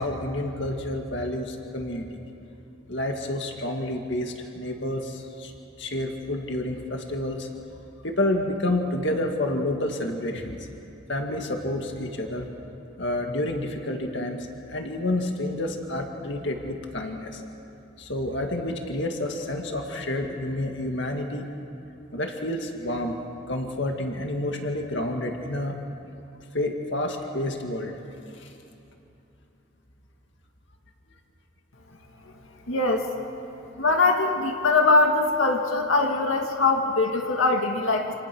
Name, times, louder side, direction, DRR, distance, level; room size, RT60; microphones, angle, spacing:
voice 1, 0.0-2.1 2.9-5.5 5.8-7.5 8.0-10.7 11.1-12.5 13.0-17.4 18.0-21.4 22.1-23.1 23.5-25.8 26.5-28.0 28.3-28.5, left 1 dB, 60° left, 3 dB, 2.1 m, -29 dB
voice 2, 32.7-33.1 33.8-38.1, left 3 dB, 80° left, 2 dB, 2.1 m, -22 dB
28.5 x 27.5 x 6.2 m, 2.8 s
head